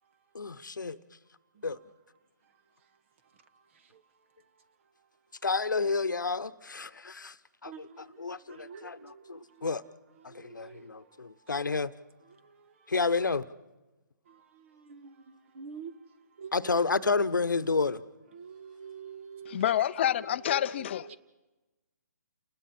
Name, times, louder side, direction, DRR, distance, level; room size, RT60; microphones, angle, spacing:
voice 1, 0.3-1.0 1.6-1.8 5.4-7.3 7.6-9.8 10.3-11.9 12.9-13.4 16.5-18.0, left 4 dB, 90° left, 1.1 m, -30 dB
voice 2, 7.7-8.0 8.5-9.4 10.3-10.9 14.7-15.1 15.5-15.9 16.4-16.5 17.6-17.8 18.3-19.6 21.0-21.2, right 6 dB, 40° right, 1.4 m, -46 dB
voice 3, 19.5-21.2, left 11 dB, 40° left, 0.6 m, -28 dB
29.5 x 20.0 x 4.4 m
hypercardioid pair, 150°, 10 cm